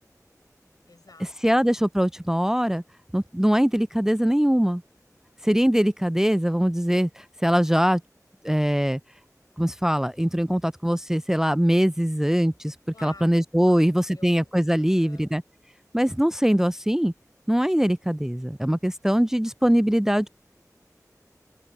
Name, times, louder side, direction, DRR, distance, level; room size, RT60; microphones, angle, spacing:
voice 1, 0.9-1.6 12.9-15.3, left 3 dB, 90° left, 5.7 m, -51 dB
voice 2, 1.4-2.8 3.1-4.8 5.4-8.0 8.4-9.0 9.6-12.7 13.0-15.4 15.9-17.1 17.5-20.3, equal, 5° right, 0.3 m, -22 dB
wide cardioid pair, 55°, 6 cm